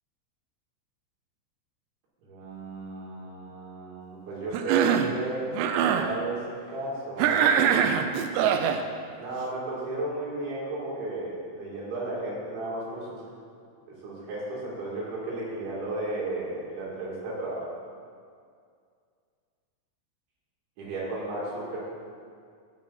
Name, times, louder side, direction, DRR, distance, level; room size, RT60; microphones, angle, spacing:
voice 1, 2.2-5.6 5.9-6.4 6.7-7.4 9.2-13.3 13.9-17.7 20.8-21.8, right 2 dB, 70° right, -7 dB, 5.0 m, -34 dB
Cough, 4.5-5.1 5.5-6.1 7.2-8.8, right 8 dB, 85° right, 2.5 m, -23 dB
17.0 x 6.0 x 4.2 m, 2.2 s
omnidirectional pair, 5.7 m